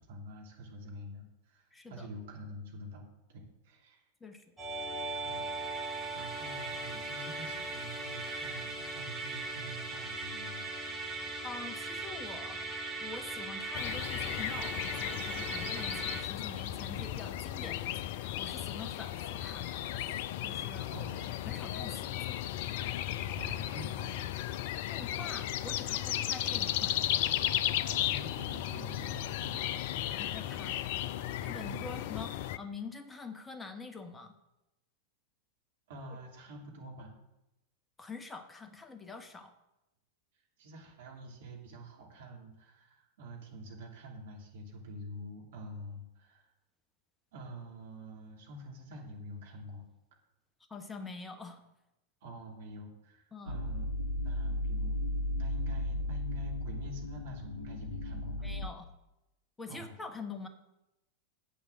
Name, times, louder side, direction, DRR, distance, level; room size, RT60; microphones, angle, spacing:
voice 1, 0.1-4.0 4.9-5.0 5.2-10.6 20.9-21.3 23.3-24.3 27.9-30.3 31.6-31.9 35.9-37.1 40.6-46.5 47.3-49.8 52.2-53.9 54.2-55.0 55.3-58.5 59.7-59.9, equal, 55° right, 0 dB, 2.6 m, -47 dB
voice 2, 1.7-2.1 4.2-4.4 11.4-12.6 13.0-21.1 21.4-22.4 24.9-27.1 30.2-30.7 31.2-34.3 38.0-39.5 50.7-51.6 53.3-53.6 58.4-58.8 59.6-60.5, left 4 dB, 10° left, 7 dB, 1.1 m, -45 dB
Musical instrument, 4.6-16.2, right 3 dB, 10° right, 2.1 m, -39 dB
sound 1, 13.7-32.6, left 12 dB, 50° left, 0.4 m, -35 dB
sound 2, 53.5-58.7, left 1 dB, 80° left, 0.7 m, -35 dB
8.0 x 7.2 x 7.4 m, 0.92 s
figure-of-eight pair, 90°, 0 cm